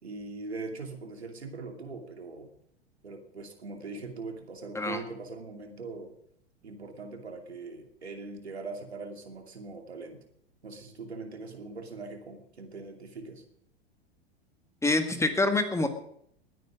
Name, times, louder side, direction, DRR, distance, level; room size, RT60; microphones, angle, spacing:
voice 1, 0.0-2.5 3.0-6.1 6.6-10.2 10.6-13.4, right 3 dB, 85° right, 4 dB, 2.8 m, -41 dB
voice 2, 14.8-15.9, left 2 dB, 10° left, 7 dB, 1.8 m, -26 dB
20.0 x 9.3 x 6.2 m, 0.69 s
hypercardioid pair, 95°, 31 cm